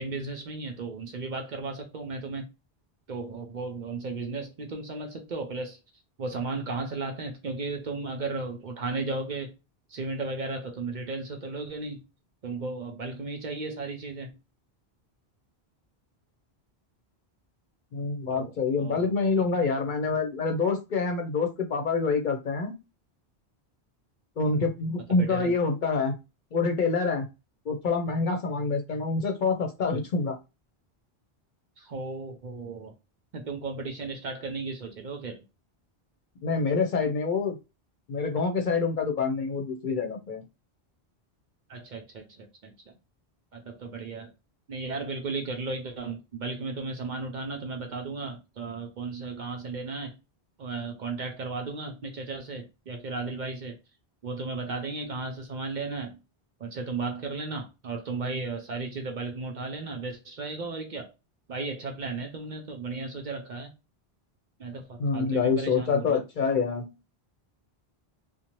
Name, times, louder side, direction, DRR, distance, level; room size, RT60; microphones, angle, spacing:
voice 1, 0.0-2.5 3.1-5.8 6.2-9.5 9.9-12.0 12.4-14.3 18.3-19.5 25.1-25.5 31.8-32.9 33.3-35.4 41.7-43.0 43.5-44.3 44.7-50.2 50.6-53.8 54.2-56.2 56.6-61.1 61.5-63.7 64.6-66.2, right 3 dB, 55° right, 0.6 m, -35 dB
voice 2, 17.9-22.7 24.4-26.1 26.5-27.3 27.7-30.3 36.4-37.6 38.1-40.4 65.0-66.8, left 4 dB, 55° left, 0.7 m, -26 dB
2.7 x 2.0 x 3.0 m
omnidirectional pair, 1.0 m